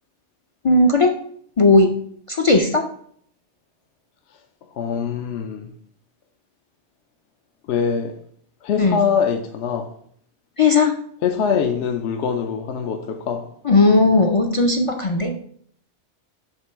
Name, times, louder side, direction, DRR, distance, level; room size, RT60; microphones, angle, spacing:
voice 1, 0.6-1.1 1.6-1.9 2.3-2.8 8.8-9.0 10.6-10.9 13.6-15.4, left 3 dB, 50° left, 3 dB, 0.4 m, -16 dB
voice 2, 4.7-5.7 7.7-8.1 8.6-9.9 11.2-13.4, left 6 dB, 75° left, 6 dB, 0.9 m, -23 dB
7.0 x 2.9 x 4.5 m, 0.63 s
omnidirectional pair, 1.2 m